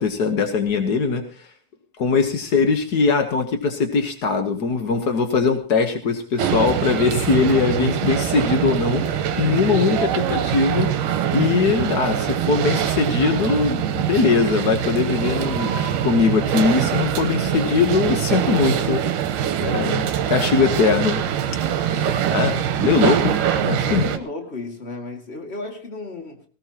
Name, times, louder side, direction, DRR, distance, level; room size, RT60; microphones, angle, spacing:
voice 1, 0.0-1.5 2.0-10.9 11.3-15.7 16.0-19.3 19.6-21.2 22.3-24.0, left 5 dB, 80° left, 0.8 m, -21 dB
sound 1, 6.4-24.2, right 9 dB, 75° right, 2.6 m, -23 dB
voice 2, 21.8-22.2 23.8-26.4, left 2 dB, 20° left, 2.0 m, -34 dB
18.5 x 18.0 x 2.9 m
omnidirectional pair, 3.8 m